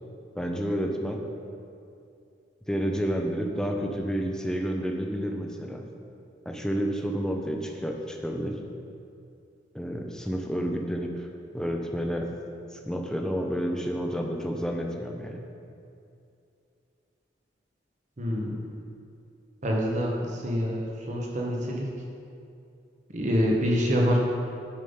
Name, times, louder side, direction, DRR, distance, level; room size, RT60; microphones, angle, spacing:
voice 1, 0.3-1.2 2.7-5.9 6.5-8.6 9.7-11.3 11.5-12.3 12.7-15.4, equal, 5° left, 2 dB, 0.5 m, -30 dB
voice 2, 18.2-18.6 19.6-21.9 23.1-24.2, equal, 40° right, -1 dB, 0.9 m, -26 dB
7.4 x 5.2 x 5.4 m, 2.6 s
head